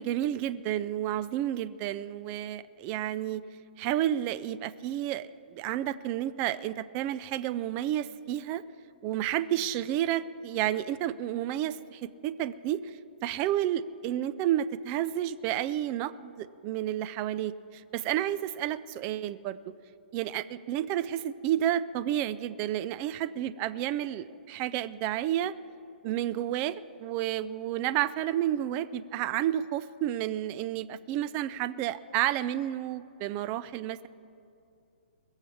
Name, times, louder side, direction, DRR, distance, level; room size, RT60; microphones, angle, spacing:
voice 1, 0.0-3.4 3.8-8.6 9.0-19.6 20.1-25.5 26.0-34.1, right 12 dB, 30° right, 15 dB, 0.4 m, -31 dB
21.0 x 7.3 x 7.1 m, 2.6 s
hypercardioid pair, 145°, 6 cm